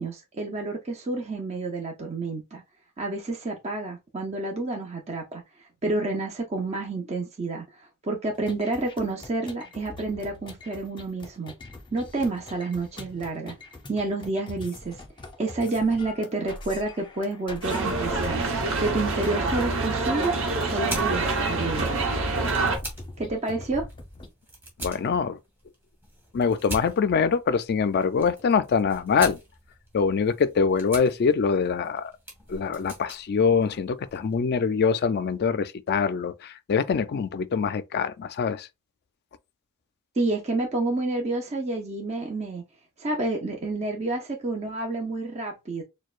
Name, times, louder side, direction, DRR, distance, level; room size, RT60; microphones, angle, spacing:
voice 1, 0.0-2.6 3.0-5.4 5.8-11.5 11.9-13.5 13.9-15.0 15.4-20.3 20.6-21.9 23.2-23.9 40.2-42.6 43.0-45.8, right 2 dB, 30° right, 0.6 m, -29 dB
sound 1, 8.3-24.3, left 2 dB, 20° left, 0.7 m, -43 dB
sound 2, 17.6-22.8, right 3 dB, 65° right, 1.0 m, -26 dB
sound 3, 19.8-34.3, right 1 dB, 10° right, 1.9 m, -43 dB
voice 2, 24.8-25.4 26.3-29.4 29.9-32.1 32.5-38.7, left 5 dB, 45° left, 0.3 m, -24 dB
6.3 x 2.2 x 2.4 m
head